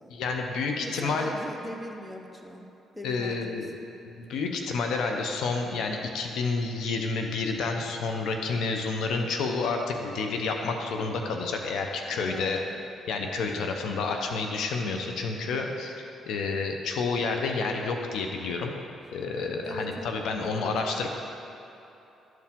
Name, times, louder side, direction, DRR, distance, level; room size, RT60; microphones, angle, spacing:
voice 1, 0.1-1.3 3.0-3.7 4.2-12.6 13.1-15.9 16.3-18.7 19.1-21.1, left 4 dB, 80° left, 3 dB, 0.7 m, -29 dB
voice 2, 0.8-3.9 12.1-12.8 13.5-14.0 19.6-20.9, equal, 5° left, 2 dB, 0.8 m, -41 dB
12.0 x 4.7 x 3.6 m, 2.9 s
cardioid pair, 90°, 0 cm